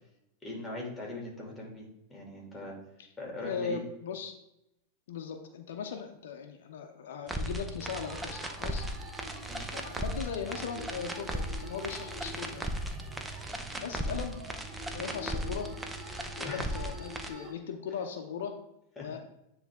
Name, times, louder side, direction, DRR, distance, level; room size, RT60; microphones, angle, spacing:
voice 1, 0.4-2.8 3.2-3.8 9.5-9.7 16.4-16.8 17.2-17.4 19.0-19.1, left 2 dB, 10° left, -1 dB, 2.6 m, -41 dB
voice 2, 3.4-4.3 5.1-8.9 9.7-12.7 13.8-14.3 14.9-15.7 16.4-18.5 19.0-19.2, left 6 dB, 80° left, 5 dB, 0.7 m, -38 dB
sound 1, 7.3-17.3, right 1 dB, 10° right, 0.7 m, -37 dB
sound 2, 7.8-17.5, right 1 dB, 25° right, 1.2 m, -47 dB
9.3 x 3.3 x 3.6 m, 0.86 s
hypercardioid pair, 120°, 0 cm